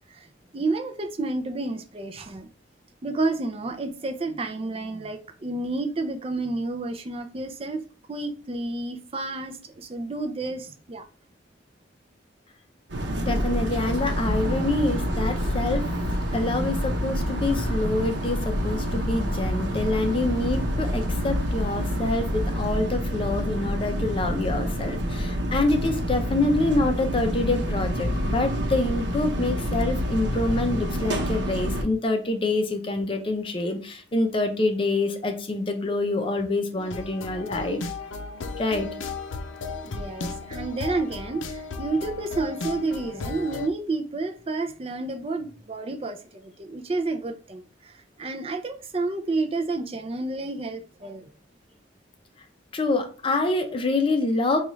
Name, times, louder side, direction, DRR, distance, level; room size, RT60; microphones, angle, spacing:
voice 1, 0.5-2.5 3.0-7.8 8.1-11.0 39.6-47.9 48.2-51.2, right 3 dB, 30° right, 0.4 m, -30 dB
sound 1, 12.9-31.8, equal, 65° right, 0.8 m, -28 dB
voice 2, 13.3-15.9 16.3-37.8 38.6-38.9 52.7-54.6, left 2 dB, 30° left, 0.5 m, -26 dB
sound 2, 13.7-22.8, left 1 dB, 50° right, 1.1 m, -34 dB
sound 3, 36.8-43.7, left 4 dB, 85° left, 0.5 m, -35 dB
5.1 x 2.3 x 3.1 m
head